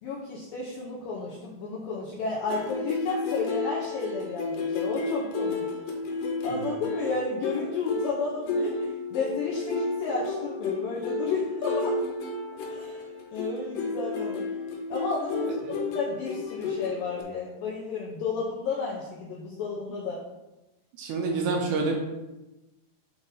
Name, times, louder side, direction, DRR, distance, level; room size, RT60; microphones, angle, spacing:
voice 1, 0.0-5.7 6.0-12.0 12.7-14.4 14.9-20.2, left 4 dB, 90° left, -4 dB, 2.0 m, -32 dB
sound 1, 2.5-17.2, left 3 dB, 75° left, 2.8 m, -32 dB
voice 2, 21.0-22.0, right 3 dB, 80° right, 1 dB, 2.5 m, -28 dB
7.7 x 2.7 x 5.5 m, 1.0 s
omnidirectional pair, 5.0 m